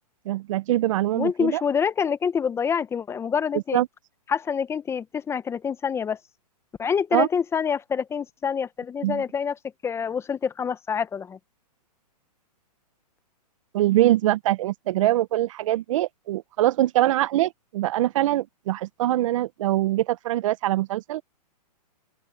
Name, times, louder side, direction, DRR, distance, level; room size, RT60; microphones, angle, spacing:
voice 1, 0.2-1.6 3.7-3.9 7.1-7.3 9.0-9.2 13.7-21.2, right 14 dB, 50° right, 1.1 m, -23 dB
voice 2, 1.1-3.8 4.3-6.2 6.8-11.4, left 7 dB, 10° left, 1.1 m, -26 dB
open air
hypercardioid pair, 135°, 21 cm